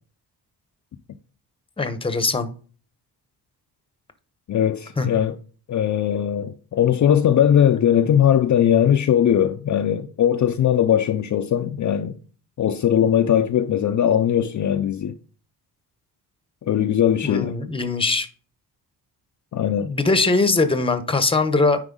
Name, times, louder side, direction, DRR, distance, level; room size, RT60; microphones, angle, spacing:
voice 1, 1.8-2.5 5.0-5.1 17.2-18.3 19.8-21.8, left 3 dB, 15° left, 0.9 m, -21 dB
voice 2, 4.5-5.4 5.7-12.1 12.6-15.1 16.6-17.5 19.5-19.9, left 9 dB, 45° left, 0.6 m, -19 dB
9.8 x 4.5 x 3.8 m
cardioid pair, 130°, 41 cm